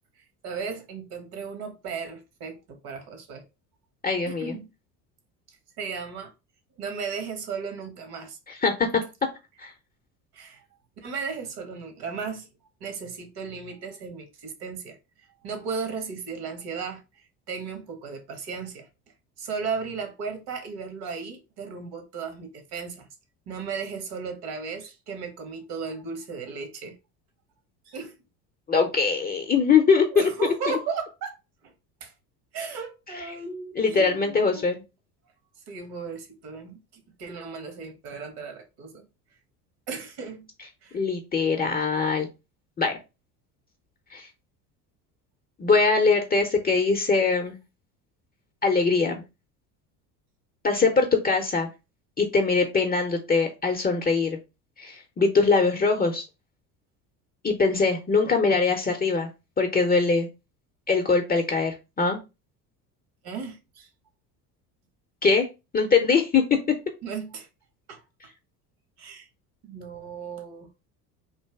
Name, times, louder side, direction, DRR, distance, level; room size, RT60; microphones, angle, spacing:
voice 1, 0.4-3.4 4.2-4.7 5.8-6.3 6.8-8.4 10.3-10.6 11.0-12.5 12.8-15.0 15.4-17.0 17.5-18.9 19.4-23.1 23.5-27.0 27.9-28.1 30.1-31.4 31.6-31.7 32.0-32.1 32.5-34.7 35.7-39.1 39.9-40.5 40.8-41.0 63.2-63.9 67.0-67.5 67.9-68.0 69.0-69.3 69.6-70.7, right 5 dB, 55° right, 1.3 m, -35 dB
voice 2, 4.0-4.5 8.5-9.0 9.6-9.7 28.7-30.3 33.1-33.2 33.8-34.8 40.9-42.3 42.8-43.0 44.1-44.3 45.6-47.5 48.6-49.2 50.6-51.7 52.2-54.4 54.8-56.2 57.4-59.3 59.6-60.3 60.9-62.2 65.2-65.5 65.7-66.6, left 4 dB, 20° left, 0.6 m, -22 dB
3.3 x 2.6 x 3.4 m
hypercardioid pair, 75°, 46 cm